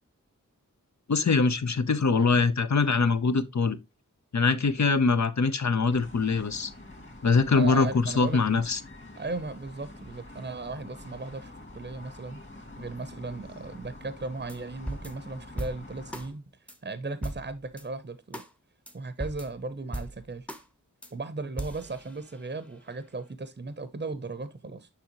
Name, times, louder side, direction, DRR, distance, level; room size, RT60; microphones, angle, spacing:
voice 1, 1.1-3.8 4.3-6.7 7.2-8.8, left 4 dB, 60° left, 0.7 m, -23 dB
sound 1, 5.9-16.3, left 1 dB, 35° left, 2.0 m, -46 dB
voice 2, 7.5-8.4 9.2-12.4 12.8-16.4 16.8-18.4 18.9-20.5 21.1-24.9, right 3 dB, 35° right, 0.7 m, -36 dB
sound 2, 14.5-14.6 14.9-16.3 16.7-16.8 17.2-17.9 18.3-18.5 18.9-19.0 19.2-20.7 21.0-21.1 21.6-22.7, right 1 dB, 5° left, 0.8 m, -39 dB
7.0 x 5.6 x 2.9 m
wide cardioid pair, 50°, 32 cm